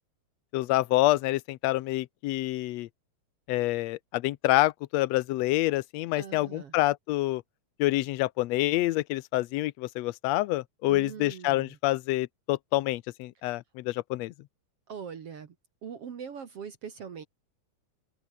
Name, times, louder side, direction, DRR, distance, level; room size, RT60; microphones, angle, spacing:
voice 1, 0.5-2.9 3.5-7.4 7.8-14.3, left 18 dB, 75° left, 1.6 m, -27 dB
voice 2, 6.1-6.7 10.9-11.8 14.9-15.6 15.8-17.2, right 7 dB, 50° right, 2.5 m, -41 dB
open air
omnidirectional pair, 3.7 m